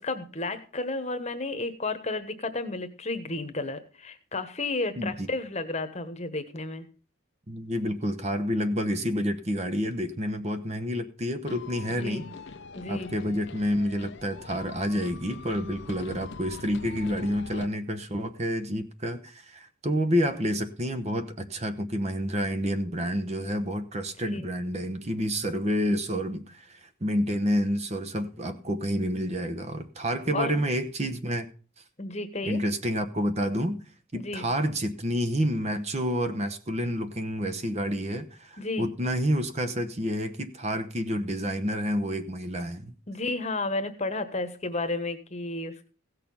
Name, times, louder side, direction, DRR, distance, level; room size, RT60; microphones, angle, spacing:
voice 1, 0.0-6.9 12.0-12.3 12.7-13.1 24.3-24.4 30.3-30.6 32.0-32.6 34.2-34.5 38.6-38.9 43.1-45.9, left 2 dB, 30° left, 1.2 m, -32 dB
voice 2, 5.0-5.3 7.5-12.3 12.9-31.5 32.4-33.8 34.1-42.9, equal, 30° right, 0.9 m, -29 dB
sound 1, 11.5-17.7, left 4 dB, 55° left, 0.7 m, -43 dB
16.5 x 6.7 x 5.4 m
head